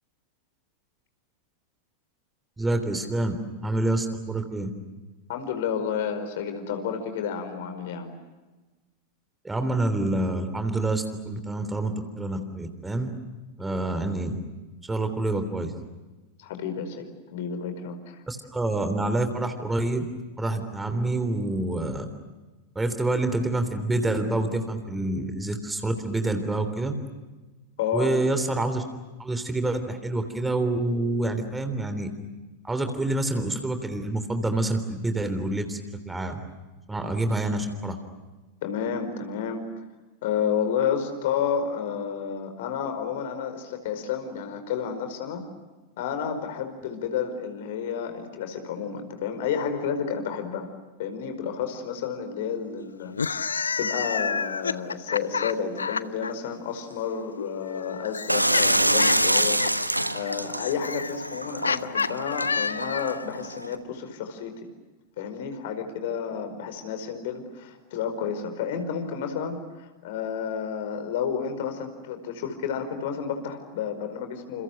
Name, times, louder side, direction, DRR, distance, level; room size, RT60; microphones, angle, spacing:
voice 1, 2.6-3.4 3.6-4.7 9.4-13.1 13.6-14.4 14.8-15.7 18.3-20.0 20.4-22.1 22.7-27.0 27.9-28.8 29.2-32.1 32.6-35.8 36.0-36.4 36.9-38.0, right 2 dB, 10° right, 8 dB, 3.4 m, -27 dB
voice 2, 5.3-8.1 16.4-18.2 27.8-28.1 38.6-39.6 40.2-45.4 46.0-50.7 51.0-53.2 53.8-64.5 65.2-74.6, left 7 dB, 55° left, 7 dB, 5.0 m, -31 dB
sound 1, 53.1-56.3 57.4-63.3, left 5 dB, 75° left, 0.8 m, -30 dB
sound 2, 58.3-63.8, right 1 dB, 85° right, 1.3 m, -26 dB
30.0 x 29.0 x 6.6 m, 1.2 s
figure-of-eight pair, 90°, 0 cm